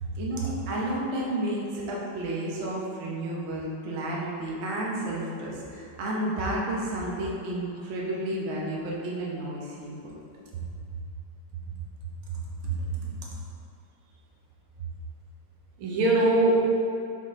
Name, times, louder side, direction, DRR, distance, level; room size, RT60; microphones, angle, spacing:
voice 1, 0.2-10.1, right 1 dB, 50° right, -4 dB, 0.8 m, -31 dB
voice 2, 12.6-13.1 15.8-16.7, right 2 dB, 85° right, -3 dB, 1.8 m, -23 dB
6.1 x 4.2 x 3.6 m, 2.6 s
omnidirectional pair, 2.3 m